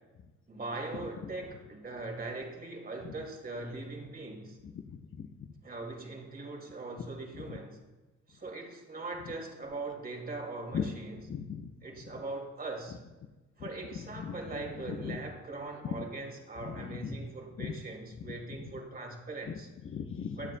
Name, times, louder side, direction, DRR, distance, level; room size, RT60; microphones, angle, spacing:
voice 1, 0.5-4.6 5.6-7.8 8.3-11.2 11.8-13.0 13.6-19.7 20.4-20.6, right 3 dB, 30° right, 2 dB, 2.3 m, -41 dB
voice 2, 4.9-5.3 10.7-10.9 11.3-11.7 14.2-14.3 14.9-15.2 15.8-15.9 16.6-17.1 17.6-17.7 18.2-18.3 19.8-20.4, left 8 dB, 45° left, 6 dB, 0.8 m, -37 dB
21.5 x 7.4 x 2.2 m, 1.1 s
cardioid pair, 90°, 30 cm